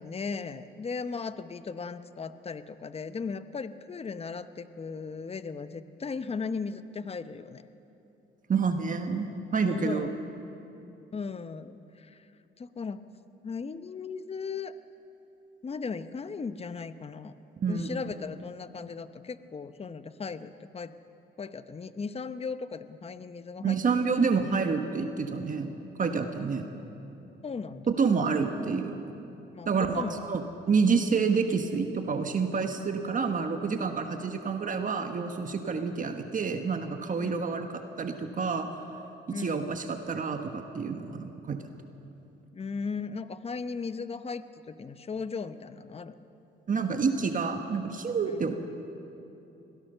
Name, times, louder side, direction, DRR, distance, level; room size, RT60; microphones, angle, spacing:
voice 1, 0.0-7.6 9.6-10.1 11.1-12.2 12.6-13.0 13.4-14.8 15.6-17.3 17.7-20.9 21.4-23.8 24.1-24.2 27.4-27.9 29.5-30.2 37.2-37.5 39.3-39.8 42.5-46.1 48.2-48.5, left 5 dB, 30° left, 12 dB, 0.8 m, -37 dB
voice 2, 8.5-10.1 17.6-17.9 23.6-25.7 26.0-26.6 27.9-29.0 29.6-37.7 38.0-38.7 39.3-41.6 46.7-48.6, right 5 dB, 40° right, 6 dB, 1.4 m, -28 dB
22.5 x 17.0 x 6.8 m, 2.9 s
cardioid pair, 90°, 20 cm